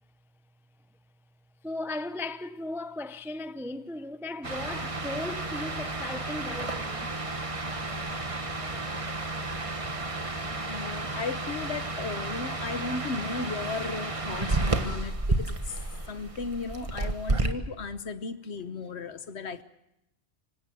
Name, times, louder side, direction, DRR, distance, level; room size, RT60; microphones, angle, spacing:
voice 1, 1.6-7.1 18.9-19.0, left 2 dB, 5° right, 0.4 m, -37 dB
sound 1, 4.4-17.5, right 2 dB, 25° right, 1.4 m, -32 dB
voice 2, 10.6-15.8 16.1-19.6, left 4 dB, 60° left, 1.3 m, -35 dB
25.5 x 17.0 x 7.7 m
omnidirectional pair, 1.3 m